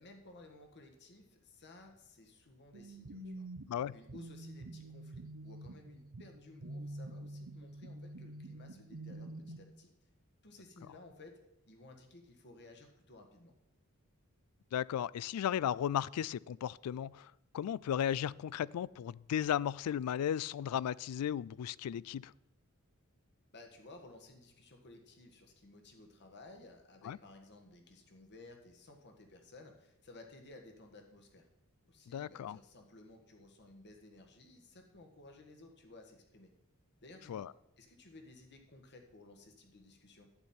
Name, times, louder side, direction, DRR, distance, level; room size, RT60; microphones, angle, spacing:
voice 1, 0.0-3.5 3.9-9.9 10.4-11.4 11.7-13.5 23.5-31.5 31.8-36.5 37.0-37.5 37.8-40.3, left 2 dB, 50° left, 3 dB, 1.5 m, -56 dB
sound 1, 2.7-9.6, right 1 dB, 65° right, 0.8 m, -47 dB
voice 2, 14.7-22.3 27.0-27.2 32.1-32.6 37.3-37.5, left 9 dB, 80° left, 18 dB, 0.3 m, -35 dB
11.5 x 8.9 x 4.3 m, 0.88 s
head